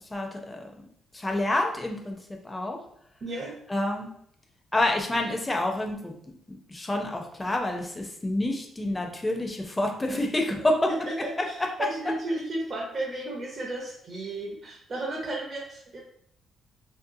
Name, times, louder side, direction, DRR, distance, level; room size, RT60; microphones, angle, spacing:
voice 1, 0.1-0.7 1.1-2.2 2.4-2.8 3.7-4.1 4.7-6.1 6.5-10.9, left 1 dB, 15° left, 2 dB, 0.5 m, -28 dB
voice 2, 3.2-3.5 10.6-16.0, right 2 dB, 45° right, -2 dB, 0.5 m, -34 dB
2.6 x 2.2 x 2.6 m, 0.68 s
cardioid pair, 90°, 0 cm